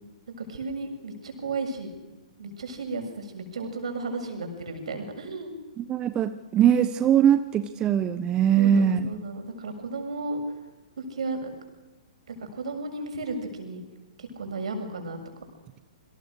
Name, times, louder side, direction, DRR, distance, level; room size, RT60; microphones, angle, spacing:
voice 1, 0.4-1.9 2.4-5.5 8.6-10.4 11.0-11.5 12.3-13.8 14.2-15.2, right 3 dB, 65° right, 5 dB, 7.1 m, -34 dB
voice 2, 5.8-9.1, right 9 dB, 20° right, 11 dB, 1.3 m, -21 dB
29.0 x 25.0 x 6.6 m, 1.1 s
figure-of-eight pair, 120°, 4 cm